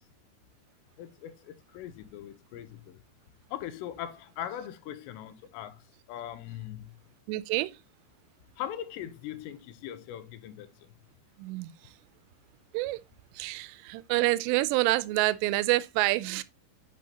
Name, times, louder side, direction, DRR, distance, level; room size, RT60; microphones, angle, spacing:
voice 1, 1.0-3.0 3.5-5.8 6.1-6.9 8.6-10.7, left 11 dB, 80° left, 2.9 m, -40 dB
voice 2, 7.3-7.8 11.4-11.7 12.7-13.0 13.3-16.4, right 18 dB, 85° right, 2.7 m, -27 dB
8.4 x 5.8 x 2.8 m
omnidirectional pair, 5.2 m